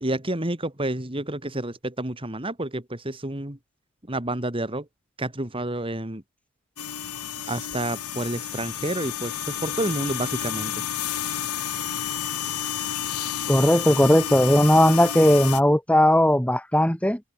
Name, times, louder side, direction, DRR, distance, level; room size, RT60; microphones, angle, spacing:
voice 1, 0.0-3.6 4.1-4.9 5.2-6.2 7.5-10.8, right 1 dB, 25° right, 2.3 m, -29 dB
sound 1, 6.8-15.6, left 9 dB, 90° left, 2.1 m, -31 dB
voice 2, 13.5-17.2, left 1 dB, 5° left, 3.1 m, -18 dB
head